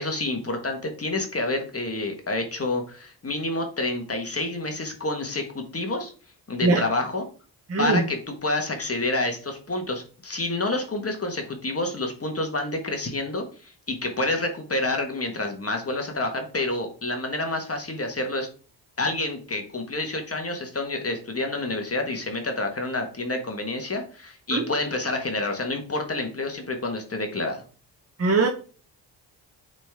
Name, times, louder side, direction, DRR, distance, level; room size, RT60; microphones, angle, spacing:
voice 1, 0.0-6.1 6.5-7.3 7.8-18.5 19.0-27.6, left 2 dB, 30° left, 4 dB, 1.6 m, -28 dB
voice 2, 7.7-8.0 24.5-24.6 28.2-28.5, right 3 dB, 35° right, 3 dB, 1.0 m, -21 dB
7.1 x 4.1 x 3.7 m, 0.39 s
cardioid pair, 65°, 44 cm